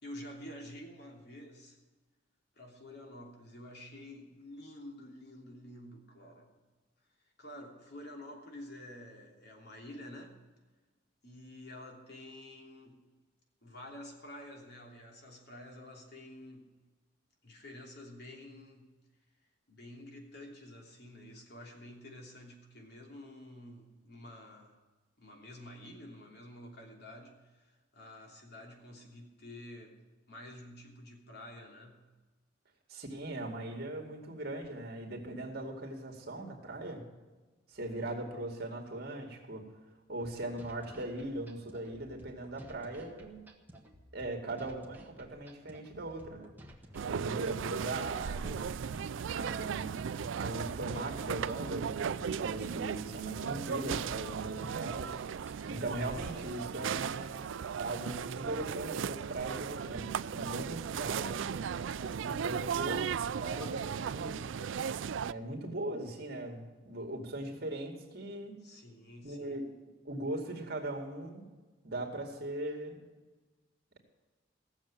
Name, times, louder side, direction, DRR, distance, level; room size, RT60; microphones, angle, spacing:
voice 1, 0.0-1.8 2.6-6.5 7.4-10.4 11.2-13.0 13.6-16.7 17.4-18.9 19.7-24.8 25.2-30.0 30.3-32.1 68.6-69.6, left 1 dB, 60° left, 1 dB, 3.1 m, -49 dB
voice 2, 32.9-37.1 37.7-39.7 40.1-43.4 44.1-46.5 47.1-48.7 49.3-55.2 55.7-57.5 57.8-61.4 62.2-64.4 65.2-68.6 69.2-69.7 70.0-71.5 71.8-73.0, right 2 dB, 55° right, 2 dB, 2.4 m, -39 dB
sound 1, 40.2-56.2, equal, 10° right, 1.6 m, -55 dB
sound 2, 46.9-65.3, right 7 dB, 80° right, 0.4 m, -36 dB
sound 3, 62.8-66.5 67.4-67.5, right 4 dB, 85° left, 2.2 m, -55 dB
16.5 x 7.3 x 8.9 m, 1.2 s
head